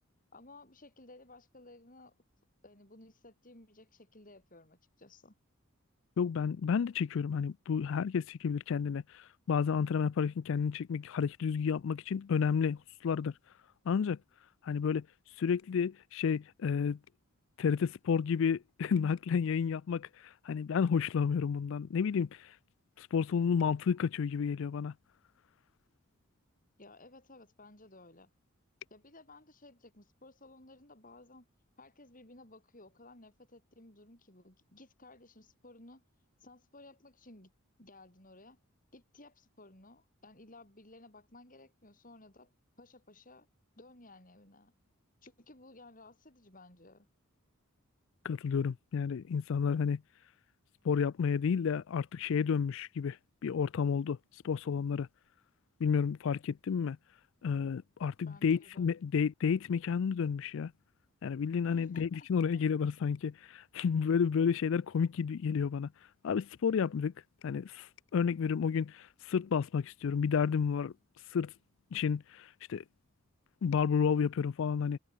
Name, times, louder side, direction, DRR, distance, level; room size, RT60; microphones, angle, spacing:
voice 1, 0.3-2.2 2.6-5.3 26.8-28.3 28.9-31.5 31.8-36.0 36.4-37.5 37.8-38.6 38.9-42.5 42.8-43.5 43.8-44.7 45.2-47.1 58.3-58.9 61.7-62.3 62.5-62.7, left 2 dB, 40° left, 5.7 m, -56 dB
voice 2, 6.2-13.3 13.9-14.2 14.6-15.1 15.4-17.0 17.6-20.1 20.5-22.3 23.0-24.9 48.2-50.0 50.8-53.2 53.4-54.2 54.4-55.1 55.8-57.0 57.4-60.7 61.2-65.9 66.2-67.1 67.4-67.9 68.1-70.9 71.3-71.5 71.9-72.8 73.6-75.0, left 6 dB, 60° left, 0.4 m, -31 dB
head